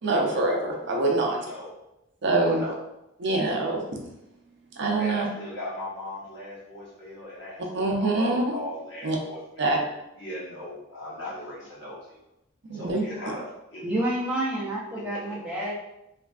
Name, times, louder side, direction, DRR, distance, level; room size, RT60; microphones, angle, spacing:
voice 1, 0.0-1.4 2.2-2.6 3.2-3.8 4.8-5.3 7.7-8.6 9.0-9.2 9.6-9.8 12.7-13.0, right 2 dB, 55° right, 0 dB, 0.5 m, -24 dB
voice 2, 1.3-1.7 2.5-2.8 5.0-9.7 10.1-12.2 12.7-13.4 13.7-13.9 15.1-15.2, left 1 dB, 55° left, -7 dB, 1.2 m, -38 dB
voice 3, 13.8-15.7, right 1 dB, 5° right, -8 dB, 0.6 m, -28 dB
3.1 x 2.5 x 2.4 m, 0.88 s
head